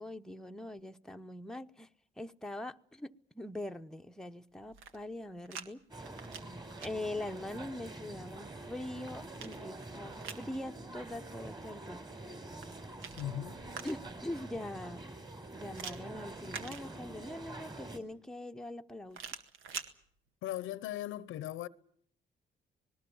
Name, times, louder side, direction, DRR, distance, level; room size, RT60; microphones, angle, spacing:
voice 1, 0.0-1.9 2.2-5.8 6.8-12.0 13.8-15.2 15.5-19.3, left 1 dB, 5° left, 0.9 m, -42 dB
sound 1, 4.6-5.7 6.0-6.9 8.6-10.5 12.5-14.2 15.7-17.3 19.1-19.9, right 6 dB, 90° right, 1.7 m, -46 dB
sound 2, 5.9-18.0, right 2 dB, 20° right, 3.6 m, -46 dB
voice 2, 13.2-13.6 20.4-21.7, left 13 dB, 90° left, 0.9 m, -38 dB
26.0 x 20.0 x 7.1 m
cardioid pair, 90°, 20 cm